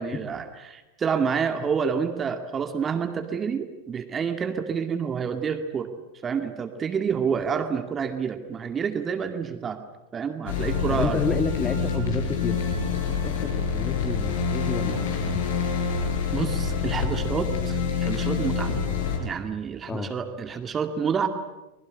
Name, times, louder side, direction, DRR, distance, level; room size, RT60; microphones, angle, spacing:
voice 1, 0.0-5.9 6.2-9.8 10.1-11.3 16.3-18.7 19.2-21.3, right 6 dB, 20° right, 7 dB, 2.2 m, -28 dB
sound 1, 10.5-19.2, left 6 dB, 55° left, 5.6 m, -26 dB
voice 2, 10.9-15.4 19.9-20.1, left 3 dB, 15° left, 8 dB, 2.3 m, -31 dB
24.5 x 21.0 x 9.8 m, 1.1 s
figure-of-eight pair, 90°, 0 cm